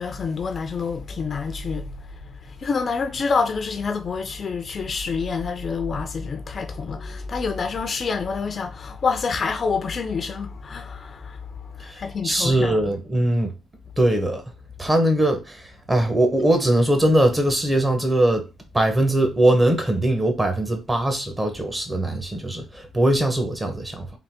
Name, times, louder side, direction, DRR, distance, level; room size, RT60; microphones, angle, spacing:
voice 1, 0.0-12.8, left 5 dB, 45° left, 0.6 m, -27 dB
voice 2, 11.9-13.5 14.0-14.4 14.8-18.5 18.7-24.1, right 1 dB, 20° right, 1.1 m, -21 dB
3.9 x 2.7 x 3.6 m
cardioid pair, 90°, 0 cm